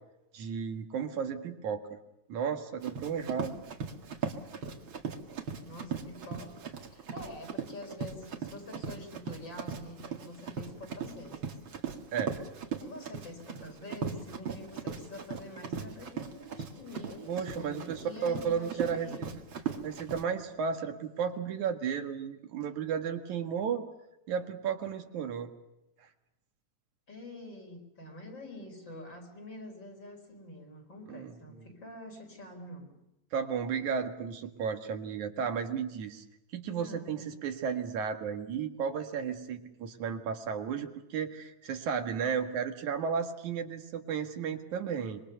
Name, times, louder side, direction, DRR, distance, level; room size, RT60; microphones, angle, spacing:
voice 1, 0.3-1.9 2.3-3.5 12.1-12.4 17.2-19.3 19.8-23.8 24.3-25.5 26.0-26.1 31.1-31.7 33.3-36.2 36.5-45.2, right 7 dB, 85° right, 6 dB, 3.2 m, -34 dB
Run, 2.8-20.2, right 6 dB, 45° right, 2.5 m, -38 dB
voice 2, 5.6-11.5 12.8-19.4 27.1-33.0 36.7-37.3, left 1 dB, 40° left, 2 dB, 5.4 m, -46 dB
26.0 x 23.5 x 6.8 m, 0.91 s
omnidirectional pair, 3.3 m